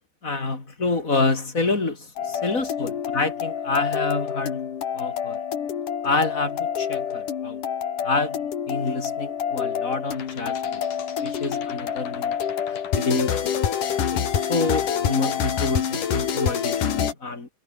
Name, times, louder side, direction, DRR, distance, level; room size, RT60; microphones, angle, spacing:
voice 1, 0.2-4.7 4.9-5.4 6.0-7.6 8.0-8.4 8.7-10.8 11.2-12.4 12.7-13.7 14.1-17.5, left 3 dB, 25° left, 3.8 m, -27 dB
sound 1, 2.2-17.1, left 8 dB, 70° left, 4.0 m, -27 dB
omnidirectional pair, 3.9 m